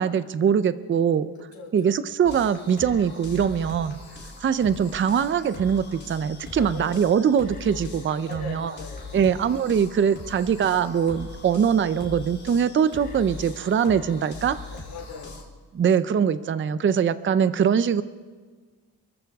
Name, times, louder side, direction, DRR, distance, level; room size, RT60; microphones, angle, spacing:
voice 1, 0.0-1.3 1.7-4.0 4.4-8.7 9.1-14.6 15.7-18.0, right 7 dB, 35° right, 14 dB, 0.5 m, -22 dB
voice 2, 1.5-1.9 6.5-7.0 8.2-9.4 14.7-15.4, left 4 dB, 70° left, -2 dB, 3.6 m, -40 dB
sound 1, 2.2-15.4, left 3 dB, 30° left, 3.2 m, -41 dB
28.5 x 14.0 x 3.6 m, 1.5 s
cardioid pair, 145°, 37 cm